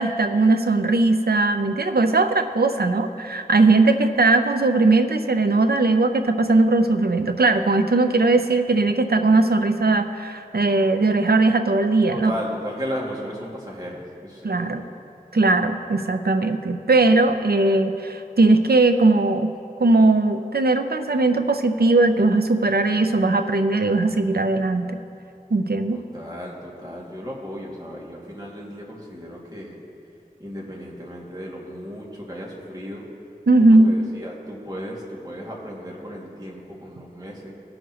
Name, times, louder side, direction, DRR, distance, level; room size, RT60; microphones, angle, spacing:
voice 1, 0.0-12.3 14.4-14.8 15.3-19.5 19.8-25.0 25.5-26.0 33.5-33.9, right 2 dB, 90° right, 7 dB, 0.6 m, -19 dB
voice 2, 12.1-14.8 25.9-29.8 30.4-33.1 33.6-37.5, equal, 25° right, -4 dB, 2.2 m, -35 dB
18.5 x 6.5 x 3.0 m, 2.5 s
wide cardioid pair, 40°, 16 cm